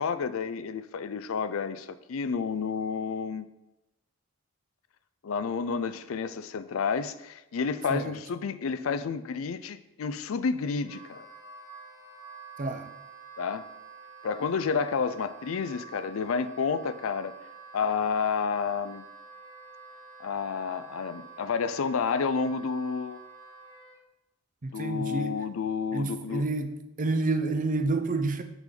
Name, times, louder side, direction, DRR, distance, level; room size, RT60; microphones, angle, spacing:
voice 1, 0.0-3.5 5.2-11.3 13.4-13.6 14.2-17.3 17.7-19.0 20.2-23.2 24.7-26.4, left 5 dB, 85° left, 0.5 m, -30 dB
Wind instrument woodwind instrument, 10.8-24.0, right 5 dB, 15° right, 1.1 m, -48 dB
voice 2, 24.6-25.4 25.9-28.4, right 3 dB, 40° right, 0.6 m, -29 dB
6.7 x 6.0 x 3.9 m
head